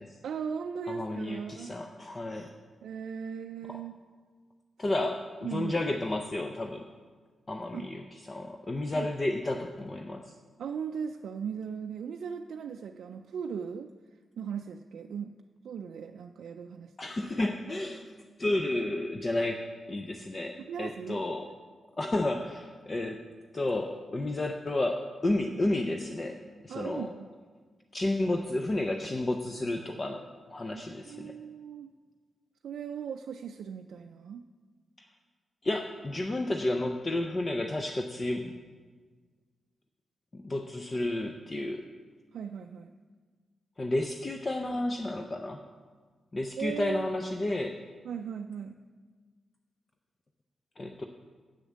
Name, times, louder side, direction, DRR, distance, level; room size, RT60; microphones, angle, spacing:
voice 1, 0.2-1.8 2.8-4.0 5.0-5.1 5.4-5.8 7.7-7.9 9.0-9.1 10.6-13.9 14.4-15.3 15.6-16.9 20.7-21.2 26.7-27.3 31.1-31.9 32.6-34.5 42.3-42.9 46.6-47.1 48.0-48.8, right 7 dB, 70° right, 4 dB, 0.3 m, -38 dB
voice 2, 0.9-2.5 3.7-3.8 4.8-6.9 7.5-8.0 8.3-10.3 17.0-18.0 18.4-21.5 22.0-23.2 23.5-26.4 26.6-27.1 27.9-31.3 35.0-35.1 35.6-38.5 40.3-41.8 43.8-45.6 46.3-47.8 50.8-51.0, left 2 dB, 20° left, 4 dB, 0.4 m, -31 dB
8.0 x 6.7 x 7.4 m, 1.5 s
wide cardioid pair, 180°, 0 cm